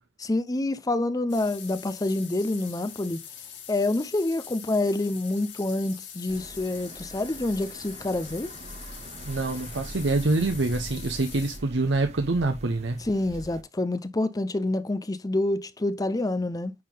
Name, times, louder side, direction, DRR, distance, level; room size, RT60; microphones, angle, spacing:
voice 1, 0.2-3.2 3.7-8.5 13.0-16.7, left 2 dB, 20° left, 0.5 m, -27 dB
sound 1, 1.3-11.6, left 9 dB, 85° left, 2.5 m, -44 dB
sound 2, 6.3-13.6, right 2 dB, 35° right, 0.7 m, -43 dB
voice 2, 9.2-13.0, right 2 dB, 80° right, 0.8 m, -26 dB
9.4 x 3.7 x 3.7 m
head